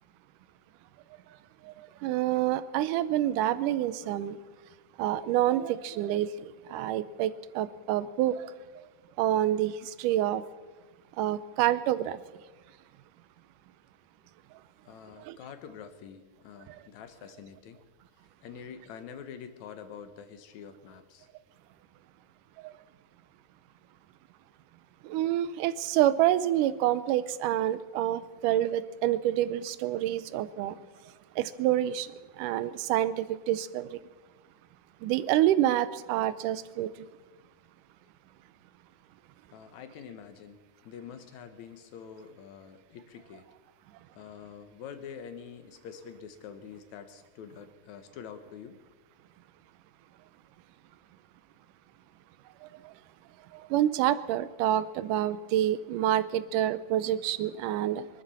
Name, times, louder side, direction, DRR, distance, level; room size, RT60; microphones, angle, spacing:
voice 1, 1.6-4.4 5.0-8.5 9.2-10.4 11.2-12.2 15.3-15.4 16.7-16.8 22.6-22.7 25.0-30.8 31.4-32.1 32.4-34.0 35.0-36.9 52.8-52.9 53.5-58.1, right 12 dB, 80° right, 15 dB, 2.0 m, -27 dB
voice 2, 14.8-17.8 18.4-21.3 39.5-43.5 44.1-48.8, left 7 dB, 65° left, 9 dB, 2.3 m, -46 dB
24.0 x 12.5 x 4.3 m, 1.3 s
omnidirectional pair, 4.0 m